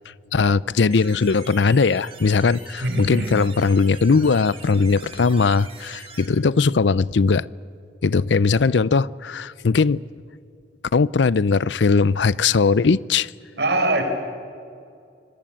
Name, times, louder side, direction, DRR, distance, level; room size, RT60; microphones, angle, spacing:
voice 1, 0.3-7.5 8.0-10.0 10.9-13.3, left 4 dB, 80° left, 0.6 m, -19 dB
sound 1, 0.9-6.3, right 5 dB, 30° right, 3.2 m, -43 dB
voice 2, 2.8-3.4 13.6-14.0, right 1 dB, 70° right, 4.4 m, -22 dB
26.0 x 21.5 x 8.8 m
head